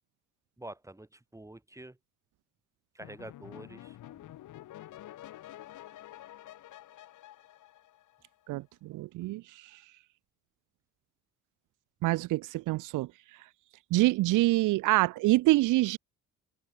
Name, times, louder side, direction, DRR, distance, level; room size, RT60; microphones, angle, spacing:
voice 1, 0.6-2.0 2.9-4.2, right 1 dB, 10° right, 5.0 m, -47 dB
synth sequence, 3.0-8.5, left 13 dB, 80° left, 4.5 m, -49 dB
voice 2, 8.5-9.4 12.0-13.1 13.9-16.0, right 18 dB, 85° right, 0.7 m, -26 dB
cardioid pair, 90°, 30 cm